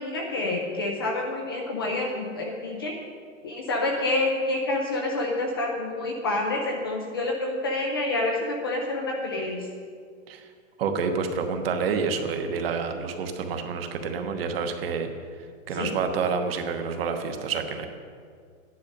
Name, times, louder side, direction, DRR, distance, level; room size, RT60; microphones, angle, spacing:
voice 1, 0.0-2.9 3.4-9.7 15.7-16.0, left 2 dB, 20° left, 0 dB, 0.5 m, -28 dB
voice 2, 10.8-15.1 15.7-17.9, right 5 dB, 45° right, 6 dB, 1.3 m, -28 dB
13.0 x 10.5 x 5.3 m, 2.1 s
supercardioid pair, 180°, 40 cm